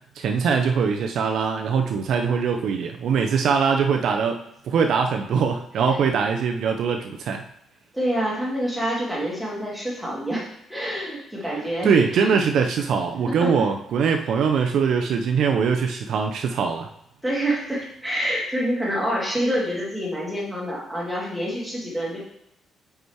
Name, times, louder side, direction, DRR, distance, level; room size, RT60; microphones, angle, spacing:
voice 1, 0.2-7.4 11.8-16.9, right 6 dB, 60° right, 4 dB, 0.4 m, -22 dB
voice 2, 7.9-12.3 13.4-13.5 17.2-22.2, equal, ahead, -6 dB, 1.8 m, -27 dB
5.3 x 4.8 x 4.6 m, 0.77 s
cardioid pair, 170°, 0 cm